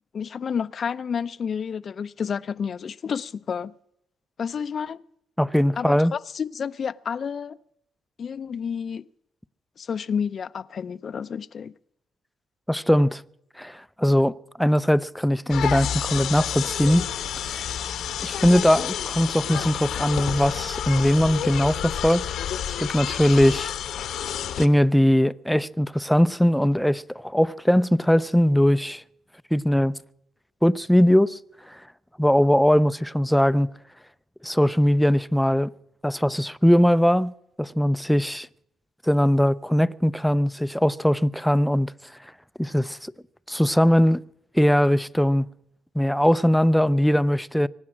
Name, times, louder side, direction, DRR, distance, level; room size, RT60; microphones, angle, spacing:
voice 1, 0.1-3.7 4.4-5.0 5.8-7.6 8.2-9.0 9.8-11.7, left 7 dB, 50° left, 0.5 m, -30 dB
voice 2, 5.4-6.1 12.7-13.2 13.6-17.1 17.4-17.7 18.2-22.2 22.8-23.7 24.6-29.0 29.5-29.9 30.6-31.4 31.7-31.8 32.2-33.7 34.4-35.7 36.0-38.5 39.0-41.9 42.6-43.1 43.5-44.2 44.5-45.5 45.9-47.7, equal, 5° left, 0.5 m, -20 dB
sound 1, 15.5-24.7, left 9 dB, 75° left, 1.0 m, -29 dB
23.5 x 9.7 x 6.2 m
cardioid pair, 90°, 0 cm